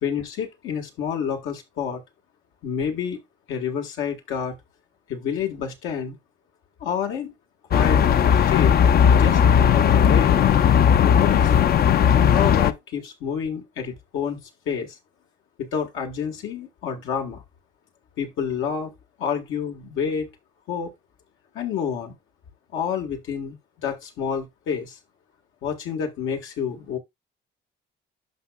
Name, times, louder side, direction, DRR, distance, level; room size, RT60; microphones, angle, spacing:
voice 1, 0.0-2.0 2.6-3.2 3.5-4.6 5.1-6.2 6.8-7.3 7.7-8.0 8.5-8.7 9.2-9.4 9.7-10.4 11.0-11.5 12.2-14.4 14.6-15.0 15.6-17.4 18.2-18.9 19.2-20.3 20.7-20.9 21.5-22.1 22.7-23.6 23.8-25.0 25.6-27.0, left 7 dB, 85° left, 1.7 m, -28 dB
sound 1, 7.7-12.7, left 8 dB, 50° left, 0.5 m, -17 dB
11.5 x 5.3 x 2.3 m
cardioid pair, 90°, 20 cm